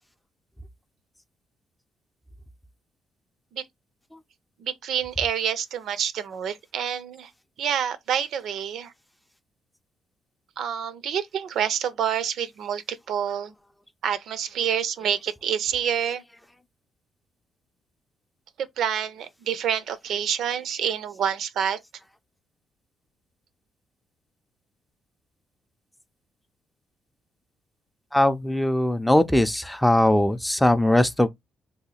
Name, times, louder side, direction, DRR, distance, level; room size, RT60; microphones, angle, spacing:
voice 1, 4.6-7.3 7.6-8.9 10.6-13.5 14.0-16.2 18.6-21.8, right 8 dB, 75° right, 0.4 m, -27 dB
voice 2, 28.1-31.3, left 1 dB, 5° left, 0.4 m, -20 dB
2.7 x 2.3 x 4.1 m
cardioid pair, 90°, 0 cm